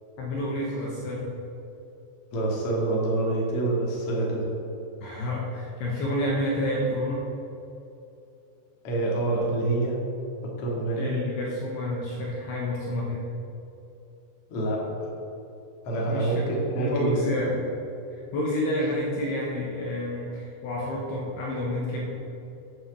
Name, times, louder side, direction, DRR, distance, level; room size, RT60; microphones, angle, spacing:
voice 1, 0.2-1.3 5.0-7.3 11.0-13.3 16.1-16.4 16.7-17.6 18.1-22.1, left 1 dB, 70° left, -3 dB, 2.6 m, -29 dB
voice 2, 2.3-4.5 8.8-10.0 10.4-11.1 14.5-15.1 15.8-17.3, right 2 dB, 55° left, -3 dB, 1.6 m, -26 dB
9.0 x 7.1 x 6.8 m, 2.9 s
omnidirectional pair, 6.0 m